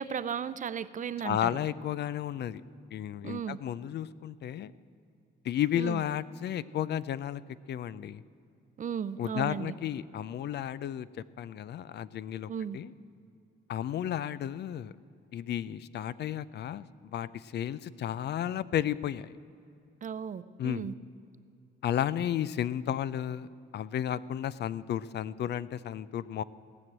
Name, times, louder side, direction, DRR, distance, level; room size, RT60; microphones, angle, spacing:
voice 1, 0.0-1.5 3.2-3.6 5.8-6.0 8.8-9.7 12.5-12.8 20.0-20.9, right 7 dB, 40° right, 15 dB, 0.5 m, -35 dB
voice 2, 1.2-2.6 2.9-4.7 5.4-7.4 7.7-8.2 9.2-12.9 13.7-14.9 15.3-19.3 20.6-20.9 21.8-23.5 23.7-26.4, left 10 dB, 60° left, 17 dB, 0.4 m, -33 dB
17.5 x 6.2 x 8.7 m, 2.5 s
cardioid pair, 90°, 20 cm